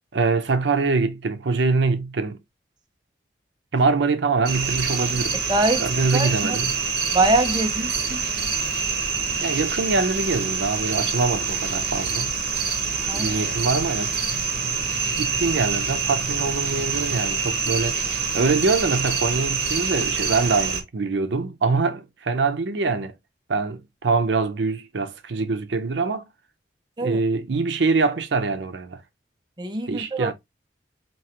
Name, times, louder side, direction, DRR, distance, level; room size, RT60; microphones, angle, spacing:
voice 1, 0.1-2.4 3.7-5.4 5.8-6.8 9.4-12.3 13.1-14.1 14.6-14.7 15.2-18.1 18.3-23.1 23.5-26.3 27.0-29.0 29.9-30.3, right 4 dB, 80° right, 0.6 m, -24 dB
sound 1, 4.5-20.8, right 5 dB, 60° right, 1.0 m, -26 dB
voice 2, 5.5-5.8 6.1-6.6 7.1-8.2 13.1-13.3 27.0-27.2 29.6-30.3, right 2 dB, 25° right, 0.5 m, -23 dB
4.6 x 2.8 x 2.8 m
head